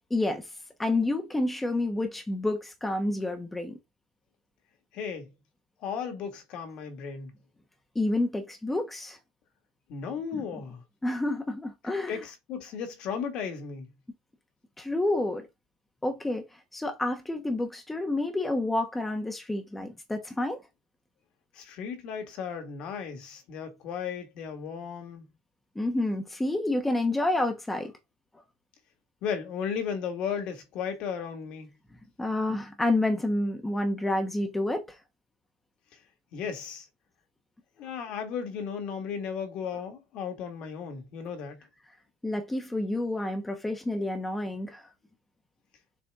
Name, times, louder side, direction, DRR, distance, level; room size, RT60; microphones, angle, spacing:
voice 1, 0.1-0.5 0.8-3.7 7.9-9.2 10.3-10.4 11.0-12.2 14.8-15.5 16.0-16.4 16.7-20.6 25.7-27.9 32.2-35.0 42.2-44.8, left 2 dB, 5° left, 1.1 m, -29 dB
voice 2, 4.9-5.3 5.8-7.3 9.9-10.8 12.1-13.9 21.5-25.3 29.2-31.7 36.3-36.9 37.8-41.6, left 7 dB, 50° left, 2.0 m, -35 dB
7.1 x 4.1 x 3.7 m
cardioid pair, 150°, 2 cm